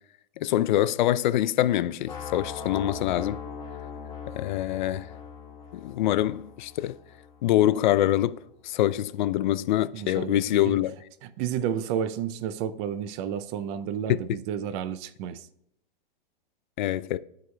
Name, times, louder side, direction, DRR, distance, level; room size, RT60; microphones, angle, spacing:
voice 1, 0.4-3.4 4.3-5.1 5.7-7.0 7.4-8.4 8.6-10.9 14.1-14.2 16.8-17.2, left 13 dB, 55° left, 0.4 m, -25 dB
sound 1, 2.0-8.0, left 6 dB, 15° left, 1.3 m, -40 dB
voice 2, 9.9-10.8 11.2-15.5, right 9 dB, 30° right, 0.4 m, -31 dB
13.0 x 4.8 x 2.2 m
hypercardioid pair, 130°, 29 cm